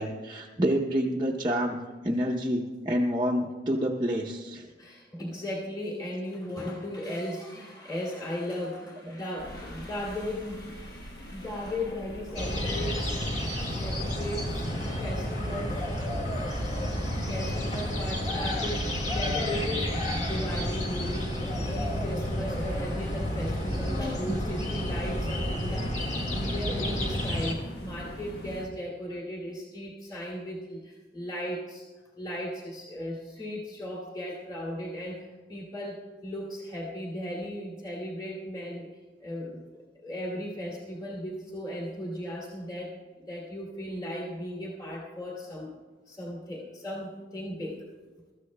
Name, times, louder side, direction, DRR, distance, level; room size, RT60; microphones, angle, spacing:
voice 1, 0.0-1.8 2.0-4.7 24.3-24.4, equal, 25° right, -2 dB, 0.7 m, -28 dB
voice 2, 4.8-13.5 13.8-15.9 17.3-31.8 32.2-38.9 39.2-39.6 40.0-42.9 43.2-45.7 46.1-47.8, left 1 dB, 20° left, -5 dB, 2.5 m, -36 dB
sound 1, 9.4-28.7, equal, 60° left, 1.4 m, -43 dB
sound 2, 12.4-27.5, equal, 40° left, 1.8 m, -31 dB
23.0 x 14.0 x 2.2 m, 1.3 s
head